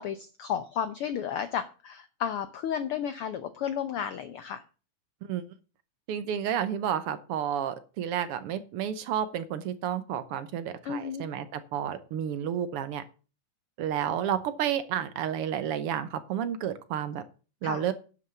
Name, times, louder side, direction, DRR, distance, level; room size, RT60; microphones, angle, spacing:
voice 1, 0.0-4.6 10.8-11.3 17.6-17.8, left 8 dB, 85° left, 11 dB, 1.2 m, -33 dB
voice 2, 6.1-13.0 13.8-17.2 17.6-17.9, right 9 dB, 70° right, 12 dB, 1.4 m, -31 dB
10.5 x 6.1 x 6.9 m, 0.35 s
omnidirectional pair, 3.5 m